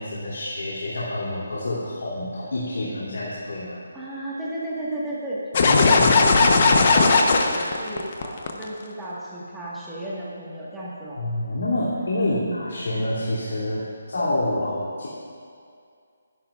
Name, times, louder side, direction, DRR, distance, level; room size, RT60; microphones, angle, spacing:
voice 1, 0.0-3.8 5.6-6.1 11.1-15.1, left 1 dB, 75° left, -7 dB, 3.0 m, -27 dB
voice 2, 3.9-11.2 12.2-12.8, right 1 dB, 5° right, -8 dB, 1.7 m, -33 dB
sound 1, 5.5-8.6, left 4 dB, 40° left, 1.0 m, -17 dB
21.5 x 11.0 x 2.5 m, 2.3 s
hypercardioid pair, 170°, 0 cm